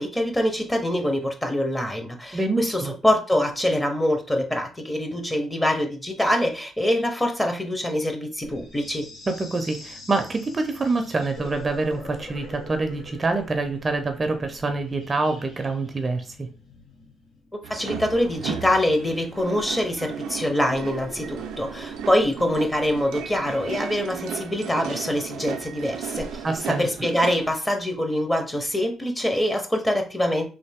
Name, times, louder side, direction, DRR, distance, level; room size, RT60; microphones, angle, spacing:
voice 1, 0.0-9.1 17.7-30.5, left 1 dB, 15° left, 5 dB, 0.7 m, -24 dB
voice 2, 2.3-2.9 9.3-16.5 26.4-26.9, right 3 dB, 30° right, 6 dB, 0.5 m, -26 dB
sound 1, 8.4-26.7, left 2 dB, 85° left, 1.0 m, -46 dB
sound 2, 17.6-27.5, right 7 dB, 90° right, 0.4 m, -35 dB
3.2 x 2.5 x 3.4 m, 0.35 s
cardioid pair, 90°, 0 cm